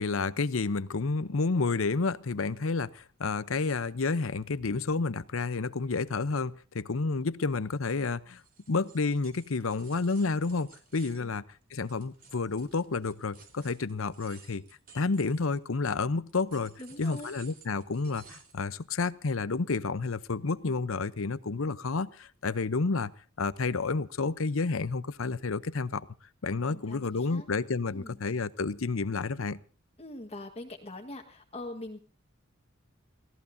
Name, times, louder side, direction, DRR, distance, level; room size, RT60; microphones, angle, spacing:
voice 1, 0.0-8.4 8.7-11.4 11.7-14.6 14.9-23.1 23.4-26.1 26.4-29.6, left 4 dB, 75° left, 0.8 m, -30 dB
sound 1, 8.4-15.8 16.3-18.6, right 5 dB, 45° right, 4.0 m, -55 dB
voice 2, 16.8-17.3 26.7-27.5 27.9-28.2 30.0-32.0, left 1 dB, 30° left, 1.5 m, -43 dB
30.0 x 17.0 x 2.7 m
head